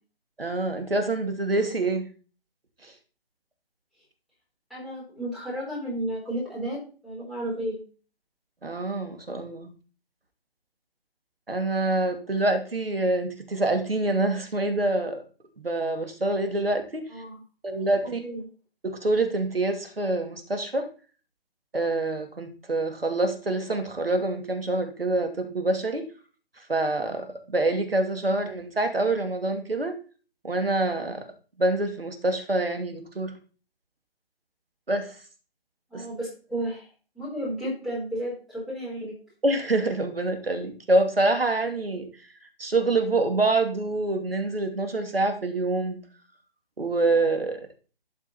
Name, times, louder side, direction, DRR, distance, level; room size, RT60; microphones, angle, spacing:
voice 1, 0.4-2.0 2.8-2.9 8.6-9.7 11.5-15.2 15.6-17.0 17.6-18.2 18.8-20.9 21.7-26.0 26.7-29.9 30.4-31.2 31.6-33.3 34.9-35.1 35.9-36.1 39.4-42.1 42.6-46.0 46.8-47.7, right 2 dB, 70° right, 6 dB, 2.6 m, -26 dB
voice 2, 4.7-7.8 17.1-17.4 18.0-18.4 35.9-36.9 37.1-39.2, right 1 dB, ahead, -8 dB, 4.4 m, -33 dB
11.5 x 7.2 x 4.3 m, 0.37 s
figure-of-eight pair, 145°, 30 cm